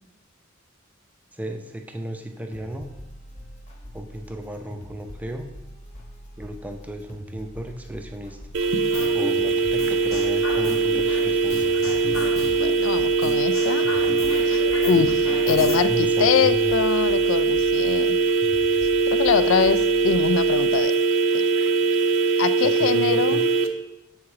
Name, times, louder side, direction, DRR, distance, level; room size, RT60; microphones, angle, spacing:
voice 1, 1.3-2.9 3.9-5.5 6.4-8.4 9.1-11.8 15.9-16.8 22.6-23.4, right 1 dB, 10° right, 5 dB, 0.5 m, -34 dB
sound 1, 2.5-20.8, equal, 35° left, 0.9 m, -43 dB
sound 2, 8.5-23.7, right 4 dB, 65° right, 0.5 m, -21 dB
sound 3, 8.9-9.3 9.8-11.2 11.5-12.7 13.2-15.8, left 3 dB, 90° left, 1.2 m, -32 dB
voice 2, 12.6-13.9 14.5-18.2 19.1-20.9 21.3-21.4 22.4-23.5, left 8 dB, 65° left, 14 dB, 0.3 m, -24 dB
7.1 x 3.6 x 4.8 m, 1.0 s
head